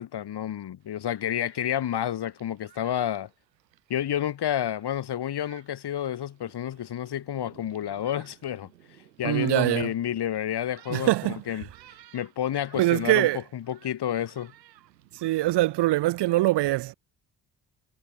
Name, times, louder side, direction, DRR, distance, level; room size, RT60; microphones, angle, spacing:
voice 1, 0.0-3.3 3.9-8.7 9.2-11.1 11.5-11.7 12.1-13.3 13.5-14.5, left 10 dB, 50° left, 3.8 m, -30 dB
Thunderstorm, 0.8-15.6, right 13 dB, 80° right, 7.3 m, -56 dB
voice 2, 9.2-9.9 10.9-11.4 12.8-13.4 15.1-16.9, right 17 dB, 55° right, 1.1 m, -23 dB
figure-of-eight pair, 40°, 50 cm